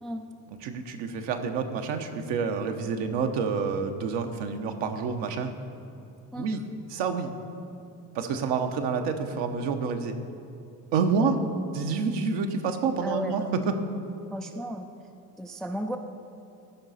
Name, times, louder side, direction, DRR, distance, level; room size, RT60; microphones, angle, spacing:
voice 1, 0.6-5.5 6.4-6.6 6.9-7.3 8.1-10.1 10.9-11.3 11.7-13.7, right 5 dB, 60° right, 6 dB, 1.0 m, -28 dB
voice 2, 13.0-13.5 14.3-14.9 15.4-16.0, equal, ahead, 5 dB, 0.4 m, -34 dB
14.5 x 5.5 x 4.1 m, 2.7 s
hypercardioid pair, 65°, 49 cm